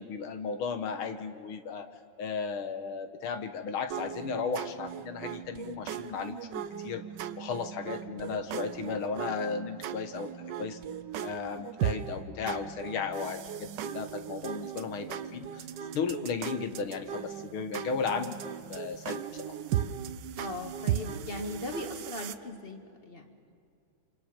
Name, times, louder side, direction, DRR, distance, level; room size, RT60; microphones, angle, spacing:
voice 1, 0.0-1.9 2.2-7.0 7.4-10.3 10.6-10.8 11.2-15.7 15.9-18.4 18.7-19.6, left 5 dB, 85° left, 8 dB, 2.2 m, -35 dB
sound 1, 3.9-22.3, right 10 dB, 65° right, 1.2 m, -37 dB
voice 2, 20.4-23.5, left 2 dB, 30° left, 4 dB, 2.0 m, -39 dB
28.0 x 27.0 x 5.2 m, 2.3 s
omnidirectional pair, 2.3 m